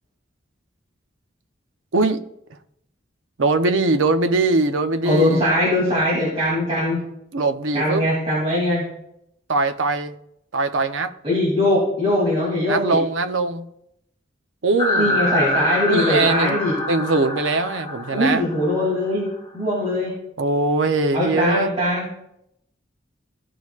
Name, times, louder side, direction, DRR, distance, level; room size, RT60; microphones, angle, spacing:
voice 1, 3.4-5.4 7.3-8.0 9.5-10.1 10.5-11.1 12.7-13.7 14.6-15.2 15.9-16.6 16.9-18.4 18.8-18.9 20.4-21.7, right 2 dB, 85° right, 0.7 m, -21 dB
voice 2, 5.0-7.0 7.7-8.8 11.2-13.0 15.0-16.7 18.1-19.3 19.5-20.1 21.1-22.1, left 1 dB, 30° right, 2.7 m, -21 dB
sound 1, 14.8-19.1, left 1 dB, 25° left, 0.8 m, -25 dB
15.0 x 6.3 x 2.4 m
head